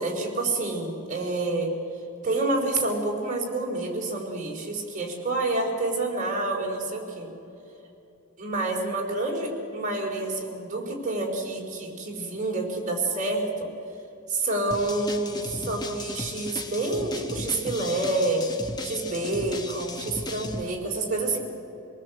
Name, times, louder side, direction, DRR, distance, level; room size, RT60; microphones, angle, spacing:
voice 1, 0.0-1.7 2.2-7.3 8.4-13.7 14.3-18.4 18.8-21.4, right 2 dB, 35° right, -1 dB, 4.2 m, -28 dB
sound 1, 14.7-20.6, left 2 dB, 20° left, 1.2 m, -36 dB
27.0 x 19.0 x 8.0 m, 2.9 s
head